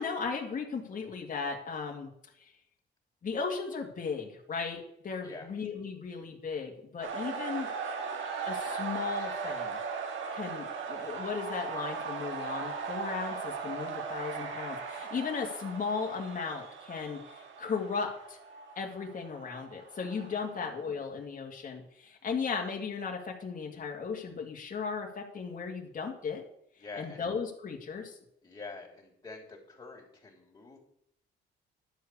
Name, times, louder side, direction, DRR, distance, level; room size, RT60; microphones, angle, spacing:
voice 1, 0.0-2.1 3.2-7.7 8.4-9.8 10.3-18.4 18.8-26.4 27.0-28.2, left 5 dB, 45° left, 1 dB, 2.2 m, -36 dB
sound 1, 7.0-20.8, right 5 dB, 75° right, 1.9 m, -38 dB
voice 2, 20.1-20.5 26.8-27.2 28.4-30.8, left 3 dB, 20° left, -2 dB, 3.3 m, -46 dB
11.0 x 4.8 x 8.4 m, 0.73 s
cardioid pair, 90°, 20 cm